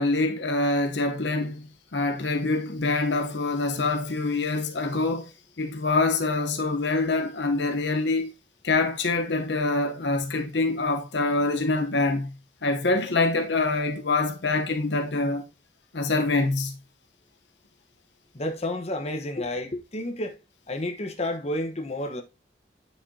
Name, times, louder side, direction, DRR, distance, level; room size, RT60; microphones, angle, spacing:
voice 1, 0.0-5.3 5.6-8.3 8.6-12.3 12.6-15.4 15.9-16.8, left 3 dB, 75° left, 0.9 m, -25 dB
voice 2, 18.3-20.3 20.7-22.2, left 1 dB, 40° left, 1.1 m, -30 dB
8.8 x 5.2 x 2.7 m
head